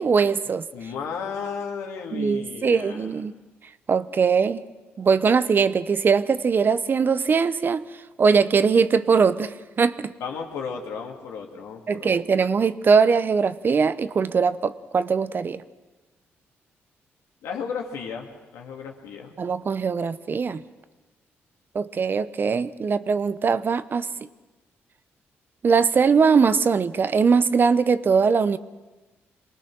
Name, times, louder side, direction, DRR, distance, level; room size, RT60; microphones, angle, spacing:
voice 1, 0.0-0.7 2.1-3.3 3.9-4.6 5.0-7.8 8.2-10.1 11.9-15.6 19.4-20.6 21.7-24.1 25.6-28.6, right 5 dB, 45° right, 14 dB, 0.8 m, -21 dB
voice 2, 0.7-3.1 10.2-12.1 17.4-18.3 18.5-19.3, left 6 dB, 90° left, 2 dB, 2.5 m, -34 dB
23.5 x 19.0 x 6.3 m, 1.2 s
cardioid pair, 75°, 5 cm